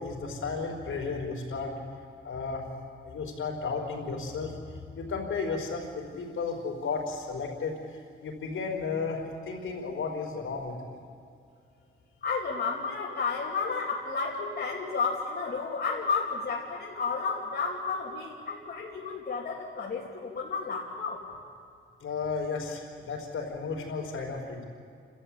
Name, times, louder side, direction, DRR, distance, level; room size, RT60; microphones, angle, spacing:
voice 1, 0.0-1.7 2.2-2.6 3.0-4.5 5.0-7.7 8.2-11.0 22.0-24.6, left 4 dB, 80° left, 0 dB, 4.7 m, -33 dB
voice 2, 12.2-21.2, left 4 dB, 50° left, -4 dB, 2.7 m, -32 dB
29.5 x 13.5 x 8.7 m, 2.3 s
wide cardioid pair, 135°, 21 cm